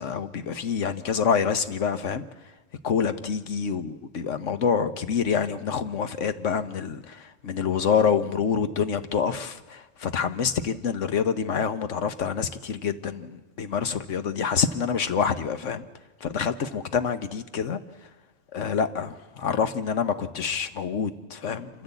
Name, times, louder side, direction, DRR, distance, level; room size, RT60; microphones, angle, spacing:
voice 1, 0.0-2.2 2.8-15.9 16.2-18.1 18.5-21.8, left 6 dB, 75° left, 10 dB, 1.4 m, -27 dB
27.0 x 14.5 x 8.3 m, 1.2 s
omnidirectional pair, 1.3 m